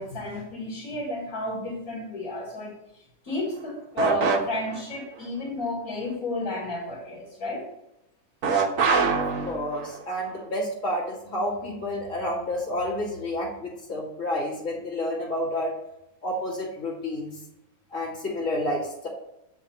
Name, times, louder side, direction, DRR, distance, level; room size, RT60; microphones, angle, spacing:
voice 1, 0.0-7.7, left 1 dB, 80° left, -5 dB, 2.4 m, -31 dB
sound 1, 4.0-4.8 8.4-10.0, right 5 dB, 70° right, 1.3 m, -25 dB
voice 2, 9.0-15.7 16.2-17.4 17.9-19.1, left 1 dB, 60° left, -6 dB, 2.7 m, -30 dB
7.3 x 4.8 x 4.3 m, 0.85 s
omnidirectional pair, 1.5 m